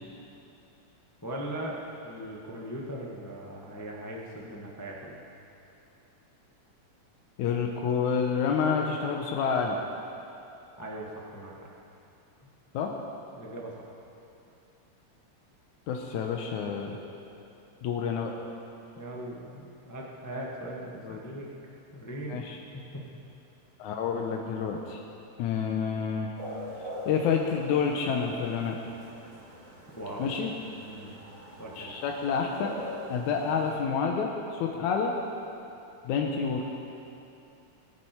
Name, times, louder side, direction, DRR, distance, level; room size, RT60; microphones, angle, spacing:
voice 1, 1.2-5.2 10.8-11.7 13.3-13.9 19.0-21.5 21.9-22.4 22.7-23.0 30.0-30.4 30.8-31.2 31.6-31.9, right 1 dB, 25° left, -3 dB, 0.4 m, -39 dB
voice 2, 7.4-9.8 12.7-12.9 15.9-17.0 17.8-18.3 21.0-21.2 22.3-22.6 23.8-25.0 25.4-26.3 27.1-28.8 30.2-30.5 31.8-32.8 33.1-35.2 36.0-36.7, left 6 dB, 85° left, 1 dB, 2.3 m, -28 dB
sound 1, 26.4-33.8, left 1 dB, 35° right, 3.9 m, -44 dB
23.0 x 9.8 x 4.5 m, 2.8 s
omnidirectional pair, 3.3 m